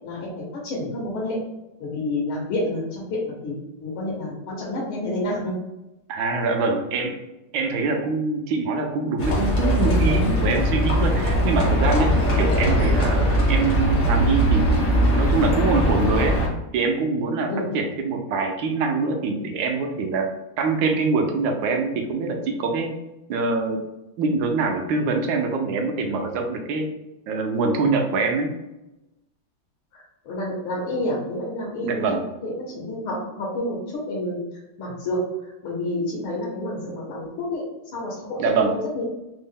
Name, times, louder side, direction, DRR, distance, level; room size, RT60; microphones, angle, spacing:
voice 1, 0.0-1.4 1.8-5.6 17.5-17.7 29.9-34.4 34.8-37.6 37.9-39.0, left 1 dB, 85° left, -5 dB, 1.7 m, -29 dB
voice 2, 6.1-7.1 7.5-16.4 16.7-20.3 20.6-23.0 23.3-23.8 24.2-26.9 27.3-28.5 31.8-32.2 38.4-38.7, right 4 dB, 75° right, 4 dB, 1.3 m, -24 dB
Livestock farm animals working animals, 9.2-16.5, equal, 45° left, 0.5 m, -20 dB
4.1 x 2.0 x 3.6 m, 0.95 s
omnidirectional pair, 2.3 m